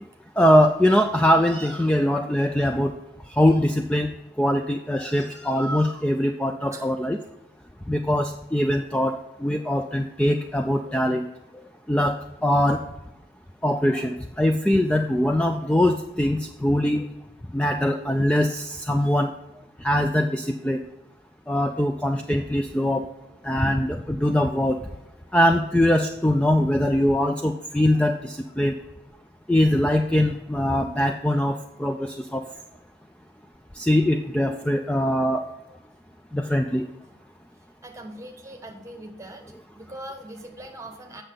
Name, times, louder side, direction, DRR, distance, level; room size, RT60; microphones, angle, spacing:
voice 1, 0.4-2.9 3.4-4.1 4.4-7.2 7.9-11.2 11.9-12.2 12.4-12.8 13.6-17.0 17.5-19.3 19.8-20.8 21.5-23.1 23.4-24.8 25.3-28.7 29.5-32.4 33.8-35.5 36.3-36.8, left 1 dB, 5° left, 5 dB, 0.3 m, -22 dB
voice 2, 37.8-39.4 39.7-41.2, right 1 dB, 15° right, 3 dB, 1.1 m, -40 dB
8.1 x 6.7 x 3.7 m, 0.98 s
head